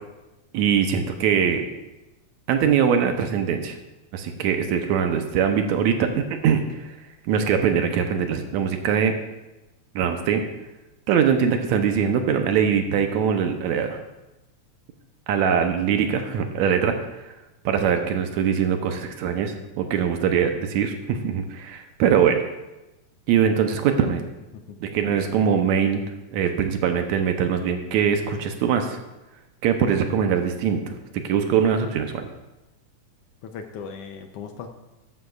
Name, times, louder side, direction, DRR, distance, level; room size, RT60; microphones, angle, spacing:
voice 1, 0.5-1.7 2.5-3.8 4.1-7.0 7.2-9.2 10.0-10.4 11.1-14.0 15.3-17.4 17.7-22.4 23.3-24.2 24.8-26.0 26.3-29.0 29.6-32.3, right 7 dB, 80° right, 6 dB, 2.1 m, -22 dB
voice 2, 33.4-34.7, left 6 dB, 75° left, 5 dB, 1.4 m, -38 dB
13.5 x 11.5 x 2.4 m, 1.0 s
omnidirectional pair, 3.3 m